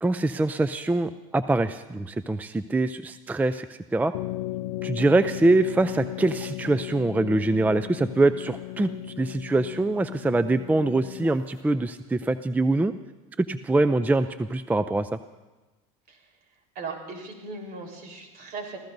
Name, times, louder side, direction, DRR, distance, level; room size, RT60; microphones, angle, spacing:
voice 1, 0.0-4.1 4.8-8.9 9.2-12.9 13.4-15.2, right 2 dB, 10° right, 12 dB, 0.4 m, -24 dB
sound 1, 4.1-11.6, left 15 dB, 85° left, 0.6 m, -36 dB
voice 2, 16.7-18.8, right 3 dB, 60° right, 2 dB, 3.9 m, -38 dB
27.0 x 15.5 x 2.7 m, 1.2 s
supercardioid pair, 95°, 19 cm